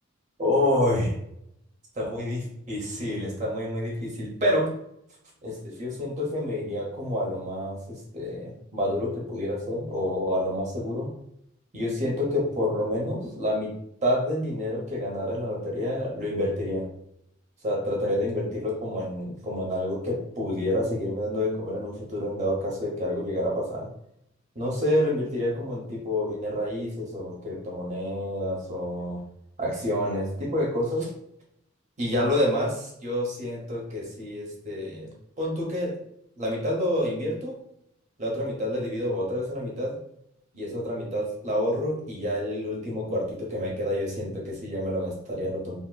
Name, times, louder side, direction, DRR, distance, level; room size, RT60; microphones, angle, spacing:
voice 1, 0.4-1.1 2.0-2.4 2.7-4.7 5.4-11.1 11.7-13.7 14.0-16.9 17.6-23.9 24.5-29.2 29.6-31.1 32.0-35.1 35.4-36.0 36.4-37.6 38.2-39.9 40.5-45.8, left 1 dB, 35° right, -2 dB, 0.7 m, -28 dB
2.7 x 2.3 x 2.3 m, 0.76 s
head